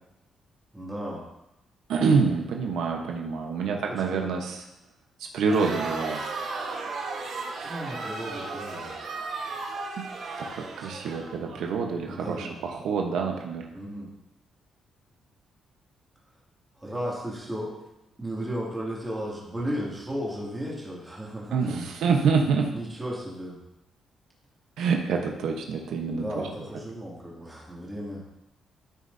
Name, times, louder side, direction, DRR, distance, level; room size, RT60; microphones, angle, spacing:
voice 1, 0.7-1.3 3.7-4.3 7.6-9.0 10.8-10.9 12.0-12.6 13.7-14.1 16.8-17.7 18.2-21.8 22.7-23.6 26.1-28.2, equal, 10° right, -5 dB, 2.4 m, -35 dB
voice 2, 1.9-4.6 5.3-6.2 10.0-10.1 10.4-13.6 21.5-22.7 24.8-26.4, right 5 dB, 85° right, 2 dB, 1.0 m, -26 dB
Crowd, 5.4-11.6, right 3 dB, 55° right, 1.3 m, -35 dB
13.5 x 6.5 x 2.7 m, 0.89 s
cardioid pair, 150°, 0 cm